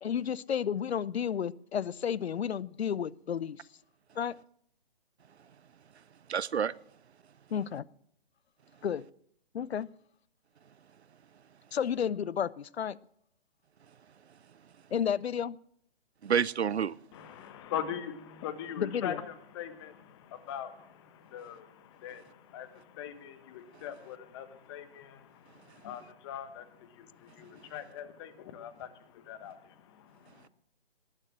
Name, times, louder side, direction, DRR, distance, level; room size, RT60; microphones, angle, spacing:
voice 1, 0.0-3.6 4.2-4.3 7.5-7.9 8.8-9.0 9.5-9.9 11.7-13.0 14.9-15.6 18.8-19.2, left 8 dB, 80° left, 0.6 m, -32 dB
voice 2, 6.3-6.7 16.2-17.0, right 7 dB, 90° right, 0.6 m, -28 dB
voice 3, 17.1-30.5, left 9 dB, 25° left, 1.1 m, -42 dB
19.5 x 6.7 x 7.4 m
hypercardioid pair, 145°, 32 cm